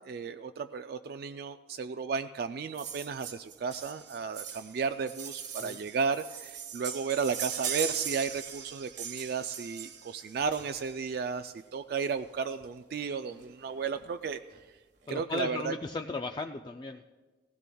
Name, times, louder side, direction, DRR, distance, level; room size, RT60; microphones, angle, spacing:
voice 1, 0.0-14.6 15.1-15.7, right 5 dB, 55° right, 9 dB, 0.3 m, -34 dB
sound 1, 2.8-11.1 12.2-12.3 12.6-12.7 12.9-13.1 13.4-14.0 14.5-14.6, right 8 dB, 75° right, 1.3 m, -39 dB
voice 2, 5.4-5.8 13.3-13.5 15.1-17.0, left 3 dB, 25° left, 5 dB, 0.3 m, -36 dB
18.0 x 16.0 x 2.3 m, 1.3 s
head